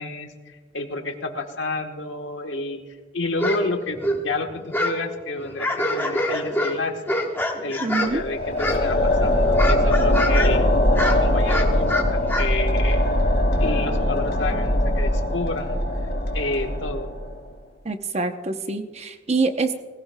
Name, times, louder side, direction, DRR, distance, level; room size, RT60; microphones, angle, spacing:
voice 1, 0.0-2.8 3.1-7.2 7.6-10.7 11.0-13.0 13.6-15.8 16.3-17.1, left 2 dB, 70° left, 4 dB, 1.3 m, -30 dB
sound 1, 3.4-3.6 3.9-5.0 5.4-8.2 8.6-9.1 9.4-10.6 10.9-12.5, left 1 dB, 10° left, 1.0 m, -26 dB
voice 2, 7.8-8.2 17.8-19.7, right 3 dB, 35° right, 8 dB, 0.8 m, -25 dB
sound 2, 8.1-17.4, left 1 dB, 55° left, 1.7 m, -21 dB
19.0 x 17.0 x 2.3 m, 1.4 s
head